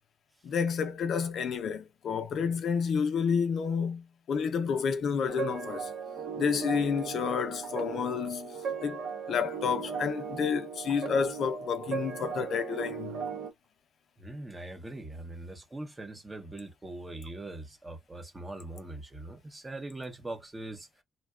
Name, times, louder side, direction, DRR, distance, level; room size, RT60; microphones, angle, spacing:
voice 1, 0.4-5.9 6.4-8.5 8.8-9.0 9.3-13.2, left 6 dB, 65° left, 0.5 m, -30 dB
sound 1, 5.3-13.5, right 6 dB, 70° right, 0.8 m, -37 dB
voice 2, 14.2-20.9, right 2 dB, 20° right, 0.7 m, -41 dB
2.7 x 2.1 x 2.3 m
cardioid pair, 90°, 0 cm